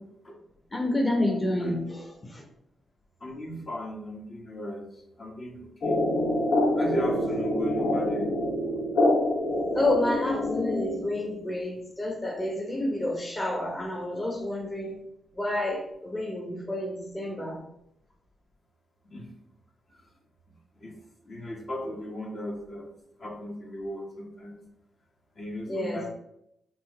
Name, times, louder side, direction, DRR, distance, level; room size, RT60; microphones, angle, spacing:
voice 1, 0.7-2.0 2.3-2.4 9.7-14.9 15.4-17.6 25.7-26.0, left 1 dB, 25° left, -1 dB, 0.9 m, -29 dB
voice 2, 1.6-2.0 3.2-4.8 5.2-6.0 6.7-8.3 19.0-19.3 20.8-20.9 21.2-22.8 23.2-24.6 25.4-26.1, equal, 55° left, -2 dB, 1.2 m, -36 dB
sound 1, 5.8-11.3, left 1 dB, 70° left, 0.6 m, -26 dB
4.4 x 2.7 x 3.1 m, 0.79 s
supercardioid pair, 50°, 0 cm